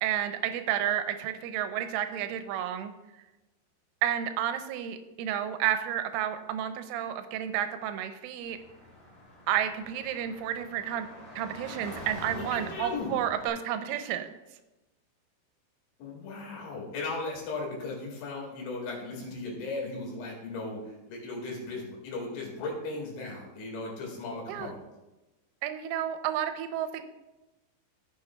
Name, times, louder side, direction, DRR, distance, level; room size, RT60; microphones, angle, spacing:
voice 1, 0.0-2.9 4.0-8.6 9.5-11.1 11.4-14.3 24.5-24.7 25.6-27.0, right 10 dB, 85° right, 9 dB, 3.0 m, -31 dB
Car / Traffic noise roadway noise, 8.4-13.5, left 1 dB, 35° left, 0.6 m, -45 dB
voice 2, 12.3-13.2 16.0-24.8, left 3 dB, 70° left, -1 dB, 4.2 m, -37 dB
15.0 x 7.0 x 2.2 m, 1.0 s
omnidirectional pair, 5.7 m